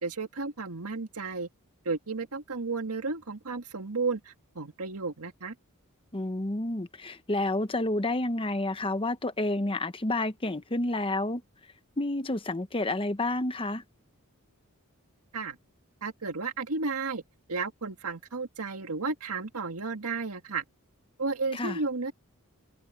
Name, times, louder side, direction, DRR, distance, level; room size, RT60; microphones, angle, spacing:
voice 1, 0.0-1.5 1.9-5.5 15.3-15.6 16.0-17.2 17.5-20.6 21.2-22.1, right 4 dB, 80° right, 1.8 m, -33 dB
voice 2, 6.1-11.4 12.0-13.8 21.5-21.8, left 2 dB, 25° left, 0.9 m, -29 dB
head